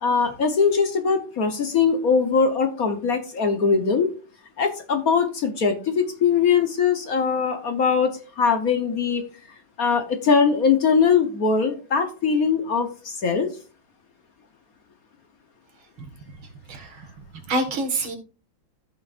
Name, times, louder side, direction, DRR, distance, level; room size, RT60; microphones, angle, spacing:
voice 1, 0.0-4.1 4.6-9.2 9.8-13.5, left 5 dB, 50° left, 7 dB, 1.3 m, -21 dB
voice 2, 16.0-17.1 17.5-18.2, right 2 dB, 80° right, 5 dB, 2.6 m, -28 dB
15.0 x 5.7 x 2.5 m, 0.35 s
omnidirectional pair, 2.2 m